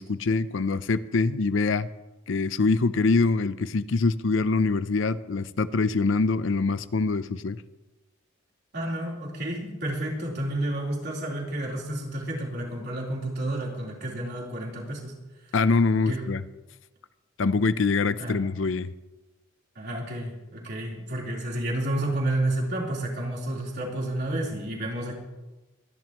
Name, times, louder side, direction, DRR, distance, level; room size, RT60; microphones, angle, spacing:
voice 1, 0.0-1.9 2.3-7.6 15.5-16.4 17.4-18.9, left 3 dB, 75° left, 14 dB, 0.6 m, -24 dB
voice 2, 8.7-15.2 16.1-16.2 18.2-18.4 19.8-25.2, right 1 dB, 55° right, -3 dB, 3.8 m, -30 dB
24.0 x 11.0 x 3.1 m, 1.1 s
head